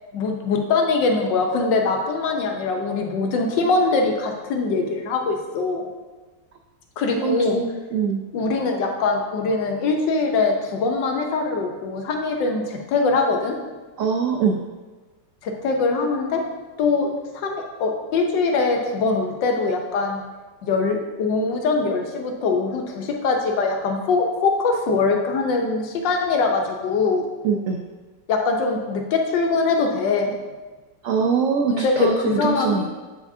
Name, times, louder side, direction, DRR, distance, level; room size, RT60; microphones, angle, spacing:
voice 1, 0.1-5.8 7.0-7.6 8.3-13.5 15.4-16.4 16.8-20.2 20.6-27.3 28.3-30.4 31.7-32.9, left 3 dB, 80° left, 2 dB, 1.5 m, -22 dB
voice 2, 7.2-8.2 14.0-14.6 27.4-27.9 31.0-32.9, right 6 dB, 85° right, 2 dB, 0.7 m, -23 dB
9.2 x 4.8 x 2.7 m, 1.3 s
omnidirectional pair, 1.9 m